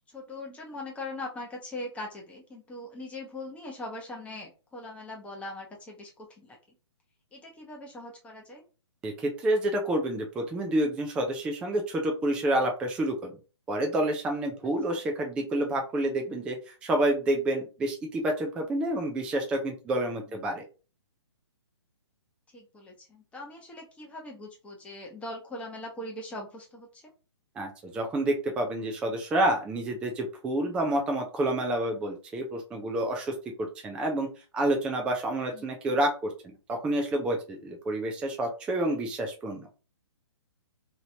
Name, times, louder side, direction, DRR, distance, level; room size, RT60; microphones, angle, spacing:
voice 1, 0.1-6.6 7.3-8.6 14.9-15.0 22.5-27.1 35.5-35.6, left 2 dB, 10° left, 0 dB, 0.8 m, -41 dB
voice 2, 9.0-13.4 13.7-20.7 27.6-34.3 34.5-36.3 36.7-39.7, right 1 dB, 5° right, 2 dB, 0.3 m, -28 dB
2.9 x 2.9 x 2.7 m, 0.33 s
hypercardioid pair, 140°, 15 cm